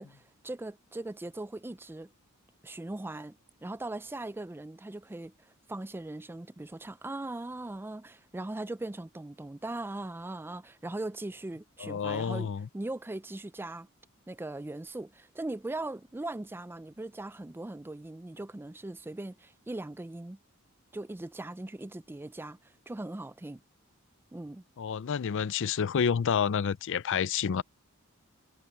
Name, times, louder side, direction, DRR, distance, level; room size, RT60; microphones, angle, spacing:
voice 1, 0.0-2.1 2.6-13.9 14.3-20.4 20.9-23.6 24.3-24.6, right 2 dB, 10° right, 0.4 m, -39 dB
voice 2, 11.8-12.7 24.8-27.6, left 7 dB, 60° left, 0.4 m, -29 dB
head